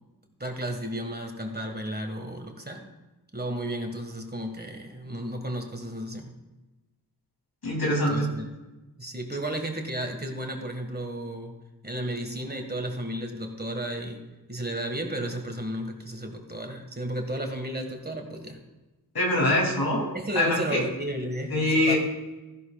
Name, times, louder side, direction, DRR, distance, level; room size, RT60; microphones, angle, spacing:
voice 1, 0.4-2.8 3.3-6.4 7.9-8.5 9.0-11.5 11.8-18.6 20.1-22.0, right 1 dB, 25° right, 4 dB, 1.7 m, -33 dB
voice 2, 7.6-8.3 19.1-20.0 20.3-20.8 21.5-22.0, left 1 dB, 80° left, -2 dB, 3.1 m, -23 dB
14.5 x 11.0 x 2.4 m, 1.1 s
cardioid pair, 50°, 37 cm